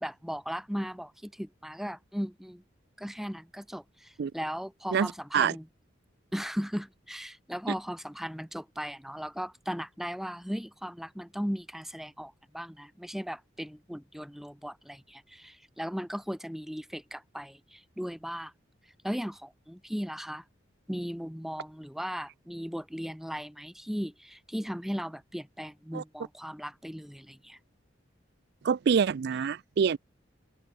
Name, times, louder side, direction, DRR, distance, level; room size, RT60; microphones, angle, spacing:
voice 1, 0.0-2.6 3.0-5.6 6.3-18.5 19.0-20.4 20.9-27.6, equal, ahead, 1.3 m, -37 dB
voice 2, 4.9-5.5 25.9-26.0 28.6-30.0, right 6 dB, 60° right, 0.4 m, -26 dB
head